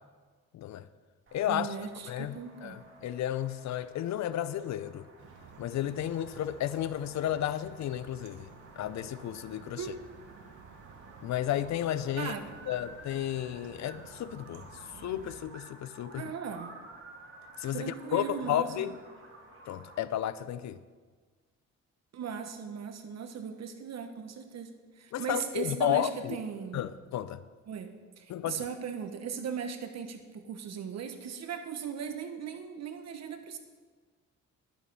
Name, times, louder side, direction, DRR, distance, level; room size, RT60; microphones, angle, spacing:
voice 1, 0.5-0.9 1.3-1.7 2.1-5.1 5.6-8.5 8.8-9.9 11.2-12.3 12.7-14.7 15.0-16.3 17.6-19.0 19.7-20.8 25.1-26.4 26.7-27.4 28.3-28.6, left 11 dB, 65° left, 0.5 m, -32 dB
sound 1, 1.3-20.1, right 2 dB, 40° right, 2.0 m, -53 dB
voice 2, 1.5-2.8 9.7-10.0 12.2-12.5 16.2-16.7 17.7-18.9 22.1-26.8 27.7-33.6, right 7 dB, 60° right, 1.2 m, -38 dB
sound 2, 5.2-15.4, right 6 dB, 80° right, 1.2 m, -53 dB
11.0 x 7.1 x 5.3 m
cardioid pair, 90°, 30 cm